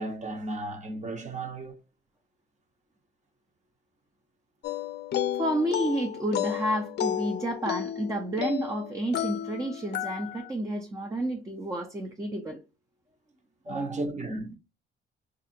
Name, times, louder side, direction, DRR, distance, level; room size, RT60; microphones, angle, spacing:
voice 1, 0.0-1.8 13.6-14.6, right 2 dB, 35° right, 1.0 m, -34 dB
sound 1, 4.6-10.5, left 10 dB, 55° left, 0.5 m, -32 dB
voice 2, 5.4-12.6 13.7-14.0, right 1 dB, 15° right, 0.6 m, -30 dB
3.5 x 2.5 x 2.7 m
cardioid pair, 90°, 20 cm